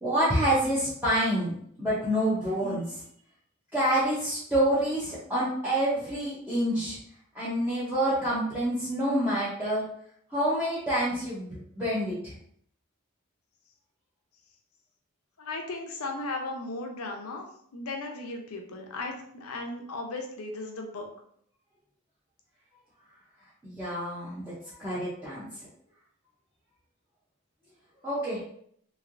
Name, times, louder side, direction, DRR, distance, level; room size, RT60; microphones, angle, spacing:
voice 1, 0.0-2.8 3.7-7.0 7.3-9.9 10.3-12.3 23.6-24.5 24.8-25.5 28.0-28.4, right 1 dB, 10° right, -11 dB, 0.7 m, -27 dB
voice 2, 15.4-21.1, left 2 dB, 85° left, 3 dB, 0.6 m, -36 dB
3.1 x 2.7 x 2.5 m, 0.66 s
head